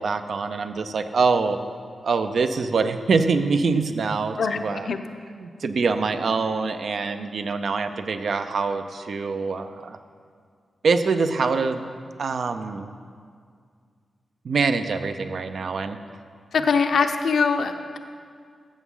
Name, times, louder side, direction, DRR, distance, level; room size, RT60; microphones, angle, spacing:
voice 1, 0.0-1.6 2.0-4.9 5.4-10.0 10.8-11.9 12.2-12.9 14.4-16.0, right 4 dB, 65° right, 9 dB, 0.5 m, -24 dB
voice 2, 16.5-18.0, left 5 dB, 75° left, 7 dB, 0.6 m, -22 dB
14.5 x 7.1 x 3.8 m, 2.1 s
wide cardioid pair, 110°, 0 cm